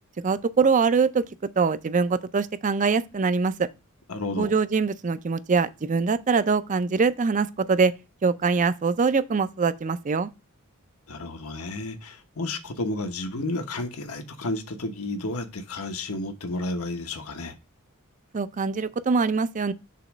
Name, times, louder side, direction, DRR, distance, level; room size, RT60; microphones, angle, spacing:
voice 1, 0.2-1.2 1.6-3.7 4.4-7.9 8.2-10.3 18.3-19.7, right 5 dB, 35° right, 0.5 m, -23 dB
voice 2, 4.1-4.5 11.1-17.5, left 2 dB, 75° left, 1.0 m, -32 dB
6.9 x 3.1 x 6.0 m
head